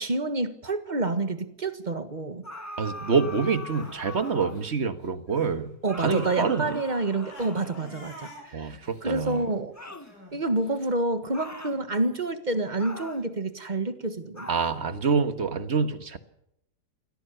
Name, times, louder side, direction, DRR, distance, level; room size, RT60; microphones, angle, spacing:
voice 1, 0.0-2.4 5.8-9.7 10.3-14.5, right 2 dB, 30° right, 11 dB, 1.6 m, -28 dB
sound 1, 2.4-4.8 5.9-8.1 9.7-10.1 11.3-11.8 12.8-13.3 14.4-14.8, left 2 dB, 10° left, 1.3 m, -41 dB
voice 2, 2.8-5.7 6.0-6.8 8.5-9.4 14.5-16.2, right 5 dB, 45° right, 11 dB, 1.7 m, -26 dB
Crying sobbing, 3.4-5.6 5.9-10.9, equal, 85° left, 8.7 m, -50 dB
23.5 x 17.0 x 6.9 m, 0.78 s
omnidirectional pair, 1.6 m